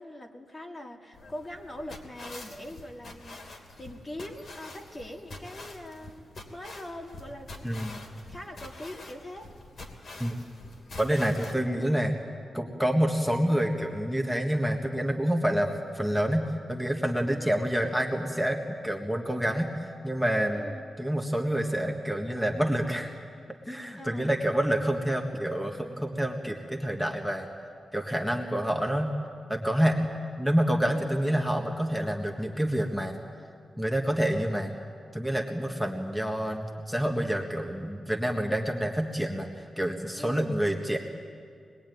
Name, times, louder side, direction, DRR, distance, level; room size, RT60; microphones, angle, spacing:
voice 1, 0.0-7.8 8.3-9.5 17.3-17.5 20.5-20.8 23.9-24.4 30.9-31.4 40.2-40.5, left 1 dB, 25° left, 3 dB, 1.9 m, -42 dB
sound 1, 1.1-11.5, left 2 dB, 55° left, 2.9 m, -46 dB
voice 2, 7.6-8.0 10.2-10.3 11.0-12.1 12.5-20.7 21.0-23.1 23.7-27.5 27.9-29.1 29.5-30.1 30.4-33.1 33.8-34.7 35.1-41.0, equal, ahead, 2 dB, 1.6 m, -28 dB
24.5 x 21.0 x 9.4 m, 2.2 s
wide cardioid pair, 115°, 0 cm